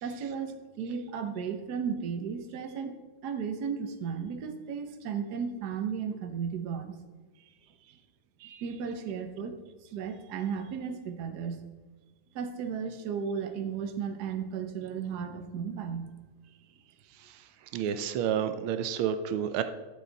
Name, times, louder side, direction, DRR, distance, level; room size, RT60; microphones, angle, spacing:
voice 1, 0.0-3.0 3.2-7.0 8.6-9.6 9.9-11.6 12.3-16.1, right 6 dB, 60° right, 7 dB, 1.3 m, -34 dB
voice 2, 17.7-19.6, right 9 dB, 90° right, 9 dB, 1.5 m, -30 dB
12.0 x 6.6 x 4.0 m, 1.2 s
omnidirectional pair, 2.2 m